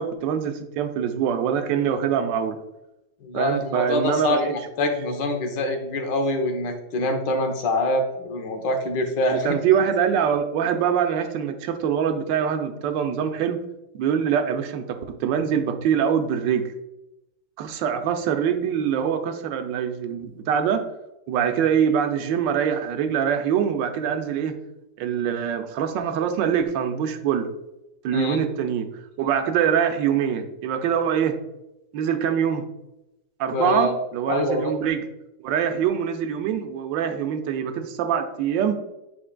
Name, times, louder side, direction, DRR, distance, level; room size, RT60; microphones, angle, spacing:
voice 1, 0.0-2.6 3.3-4.9 9.3-13.6 13.9-16.7 17.6-20.8 21.3-24.6 25.0-27.5 28.0-31.4 31.9-32.7 33.4-35.0 35.4-38.7, right 8 dB, 75° right, 7 dB, 1.3 m, -24 dB
voice 2, 3.2-9.5 28.1-28.4 33.5-33.9 34.3-34.7, left 1 dB, 70° left, 4 dB, 1.5 m, -25 dB
8.5 x 4.9 x 2.2 m, 0.93 s
omnidirectional pair, 2.1 m